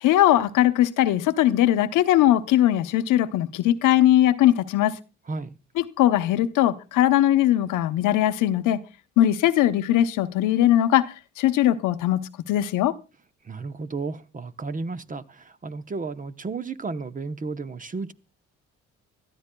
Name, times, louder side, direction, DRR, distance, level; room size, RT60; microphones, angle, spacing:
voice 1, 0.0-5.0 5.8-8.8 9.2-12.2 12.5-12.9, left 13 dB, 90° left, 0.9 m, -20 dB
voice 2, 13.4-18.1, right 4 dB, 25° right, 0.9 m, -33 dB
25.0 x 13.0 x 2.2 m
cardioid pair, 90°, 30 cm